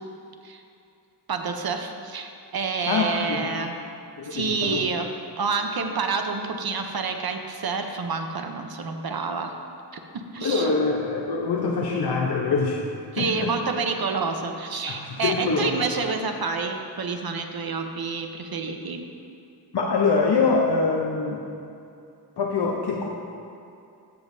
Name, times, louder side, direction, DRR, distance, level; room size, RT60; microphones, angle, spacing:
voice 1, 1.3-3.8 4.2-9.5 9.9-10.7 13.1-19.0, right 4 dB, 60° right, 5 dB, 0.8 m, -28 dB
voice 2, 2.9-3.5 4.2-4.8 10.4-12.8 13.2-13.5 14.9-15.7 19.7-21.4 22.4-23.1, left 4 dB, 70° left, -1 dB, 0.8 m, -24 dB
14.5 x 7.3 x 2.7 m, 2.6 s
wide cardioid pair, 125°, 42 cm